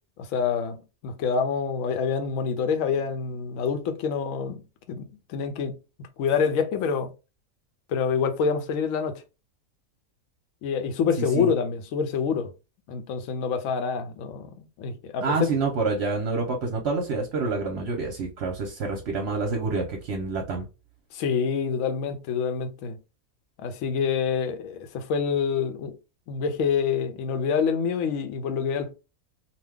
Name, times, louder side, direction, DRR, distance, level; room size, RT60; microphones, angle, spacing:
voice 1, 0.2-4.6 4.9-5.7 6.2-7.1 7.9-9.2 10.6-12.5 12.9-15.5 21.1-23.0 23.6-26.0 26.3-28.9, left 6 dB, 70° left, 0.9 m, -27 dB
voice 2, 11.2-11.5 15.2-20.7, right 3 dB, 55° right, 0.8 m, -27 dB
2.7 x 2.2 x 3.4 m
omnidirectional pair, 1.5 m